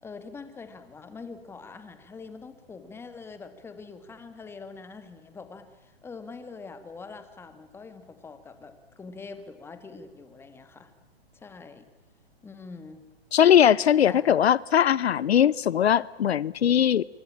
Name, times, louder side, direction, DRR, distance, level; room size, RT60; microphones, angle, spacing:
voice 1, 0.0-10.9 11.3-11.9 12.4-13.1 14.1-14.4, left 4 dB, 5° left, 10 dB, 1.9 m, -44 dB
voice 2, 13.3-17.0, left 9 dB, 75° left, 22 dB, 0.8 m, -20 dB
25.5 x 24.5 x 8.7 m, 1.1 s
hypercardioid pair, 150°, 31 cm